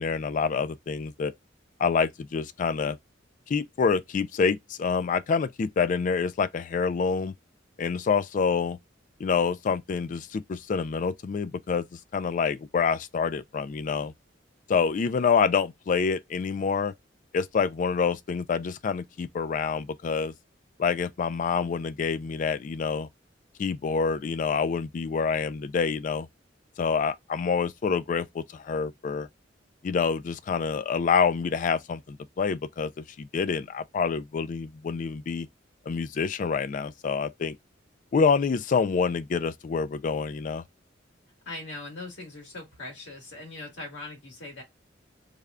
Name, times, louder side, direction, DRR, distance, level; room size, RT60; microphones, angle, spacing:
voice 1, 0.0-1.3 1.8-3.0 3.5-7.3 7.8-8.8 9.2-14.1 14.7-16.9 17.3-20.3 20.8-23.1 23.6-26.3 26.8-29.3 29.8-35.5 35.9-37.6 38.1-40.6, left 5 dB, 45° left, 0.3 m, -27 dB
voice 2, 41.5-44.6, left 2 dB, 65° left, 1.9 m, -40 dB
3.4 x 2.2 x 3.7 m
head